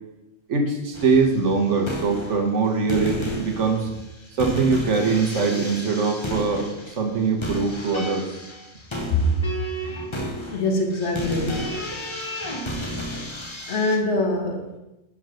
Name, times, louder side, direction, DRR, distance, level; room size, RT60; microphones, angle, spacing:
voice 1, 0.5-3.9 4.4-6.7 7.0-8.2, right 4 dB, 65° right, 3 dB, 1.3 m, -22 dB
sound 1, 0.9-1.3 1.7-2.6 2.9-14.0, equal, 25° left, 0.7 m, -32 dB
voice 2, 10.5-11.7 13.7-14.6, left 2 dB, 60° left, 2 dB, 1.4 m, -23 dB
5.4 x 4.8 x 6.4 m, 0.98 s
omnidirectional pair, 1.4 m